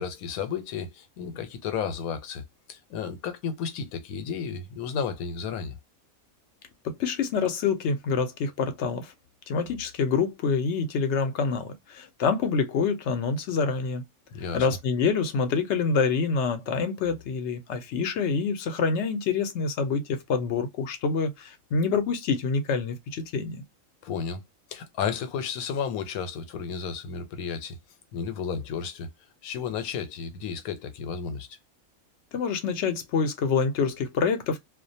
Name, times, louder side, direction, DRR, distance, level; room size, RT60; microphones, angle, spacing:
voice 1, 0.0-2.4 2.7-5.8 14.3-14.7 24.0-24.4 24.7-27.8 28.1-29.1 29.4-31.5, left 6 dB, 85° left, 1.1 m, -32 dB
voice 2, 6.8-9.1 9.5-14.0 14.5-23.6 32.3-34.6, left 5 dB, 65° left, 0.8 m, -26 dB
2.4 x 2.1 x 2.6 m
omnidirectional pair, 1.5 m